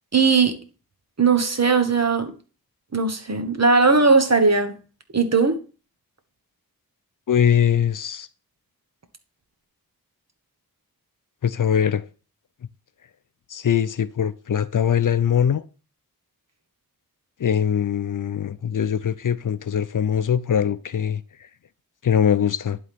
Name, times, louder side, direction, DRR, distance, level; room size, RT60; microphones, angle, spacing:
voice 1, 0.1-0.6 1.2-2.3 2.9-4.8 5.1-5.6, right 4 dB, 45° right, 1.3 m, -18 dB
voice 2, 7.3-8.3 11.4-12.1 13.5-15.6 17.4-21.5 22.0-22.8, left 8 dB, 60° left, 0.5 m, -22 dB
11.0 x 3.9 x 3.5 m
wide cardioid pair, 65°, 36 cm